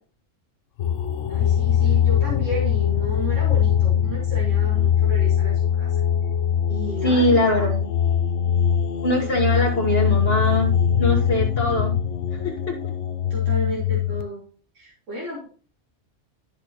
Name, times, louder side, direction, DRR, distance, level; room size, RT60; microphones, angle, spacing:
sound 1, 0.8-14.2, left 9 dB, 80° left, 1.0 m, -22 dB
voice 1, 1.3-6.0 6.7-7.5 13.3-14.4 14.7-15.5, right 1 dB, 80° right, -5 dB, 2.7 m, -32 dB
voice 2, 7.0-7.9 9.0-11.9 12.7-12.8, left 1 dB, 55° left, 1 dB, 1.6 m, -22 dB
10.5 x 6.4 x 3.0 m, 0.38 s
omnidirectional pair, 1.3 m